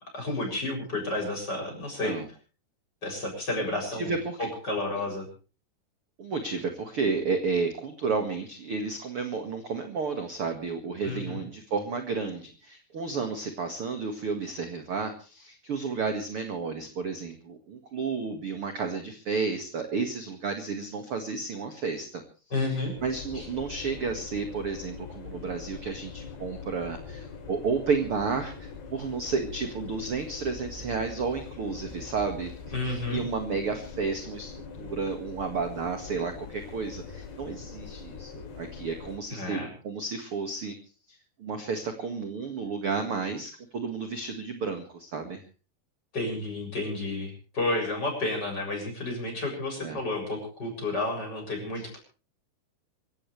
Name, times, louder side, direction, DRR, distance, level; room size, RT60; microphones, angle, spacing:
voice 1, 0.1-2.1 3.0-5.3 11.0-11.4 22.5-22.9 23.3-23.5 32.7-33.2 39.3-39.7 46.1-52.0, left 2 dB, 25° left, 2 dB, 7.7 m, -31 dB
voice 2, 3.6-4.5 6.2-22.2 23.0-32.5 32.8-40.7 41.1-45.4 49.8-50.0, right 4 dB, 45° right, 5 dB, 2.1 m, -32 dB
sound 1, 23.0-39.2, left 5 dB, 80° left, 4.7 m, -42 dB
26.0 x 15.5 x 3.3 m, 0.36 s
omnidirectional pair, 4.7 m